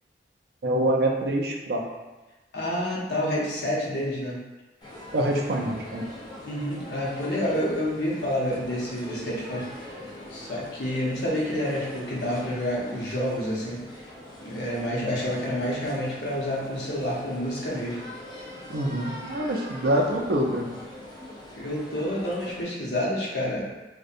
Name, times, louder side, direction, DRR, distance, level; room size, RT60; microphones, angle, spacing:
voice 1, 0.6-1.9 5.1-6.1 18.7-20.7, right 1 dB, 60° right, 0 dB, 0.4 m, -25 dB
voice 2, 2.5-4.4 6.4-10.0 10.3-14.0 14.4-18.0 21.5-23.7, equal, 75° left, -5 dB, 0.7 m, -29 dB
sound 1, 4.8-22.6, left 1 dB, 25° left, 0.4 m, -42 dB
2.6 x 2.1 x 2.5 m, 1.1 s
head